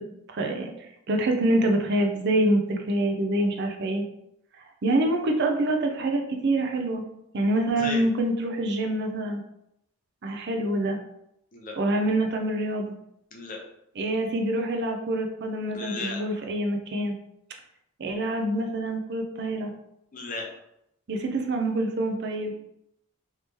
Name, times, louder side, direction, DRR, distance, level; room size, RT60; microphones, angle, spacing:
voice 1, 0.3-4.0 4.8-7.0 7.3-9.4 10.2-11.0 11.8-12.9 14.0-17.2 18.0-19.7 21.1-22.5, right 1 dB, 50° right, 3 dB, 0.5 m, -26 dB
voice 2, 15.7-16.2 20.1-20.5, left 3 dB, 35° left, 0 dB, 0.6 m, -34 dB
3.1 x 2.8 x 3.4 m, 0.78 s
head